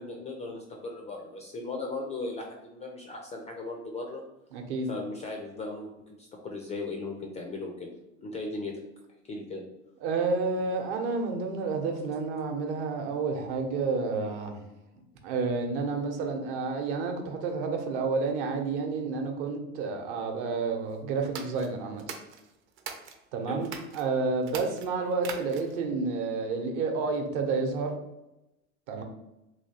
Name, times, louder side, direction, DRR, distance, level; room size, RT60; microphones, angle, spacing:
voice 1, 0.0-4.2 4.9-5.9 6.2-7.9 8.2-8.7 9.3-9.6 23.5-23.6, left 3 dB, 15° left, 1 dB, 0.4 m, -37 dB
voice 2, 4.5-4.9 10.0-14.6 15.2-22.0 23.3-23.7 23.9-27.9 28.9-29.0, right 4 dB, 55° right, 4 dB, 0.9 m, -30 dB
sound 1, 21.2-23.2 23.6-24.0 24.4-25.8, right 7 dB, 30° right, 0.5 m, -41 dB
3.2 x 2.7 x 2.7 m, 0.93 s
hypercardioid pair, 85°, 42 cm